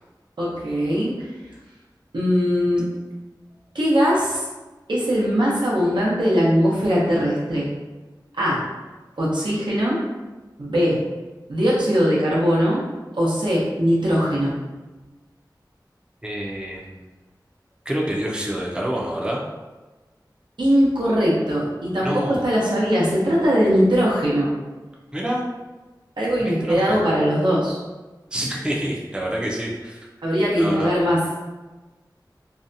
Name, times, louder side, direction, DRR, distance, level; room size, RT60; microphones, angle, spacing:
voice 1, 0.4-1.1 2.1-2.9 3.7-4.4 4.9-7.7 8.3-8.6 9.2-10.0 10.6-11.0 11.5-12.8 13.1-14.6 20.6-24.5 26.2-27.8 30.2-31.4, equal, 85° right, -6 dB, 0.7 m, -20 dB
voice 2, 16.2-16.9 17.9-19.4 22.0-22.4 25.1-25.4 26.4-26.8 28.3-30.0 30.6-30.9, right 1 dB, 10° right, -3 dB, 0.4 m, -27 dB
2.6 x 2.2 x 2.6 m, 1.2 s
wide cardioid pair, 50°, 8 cm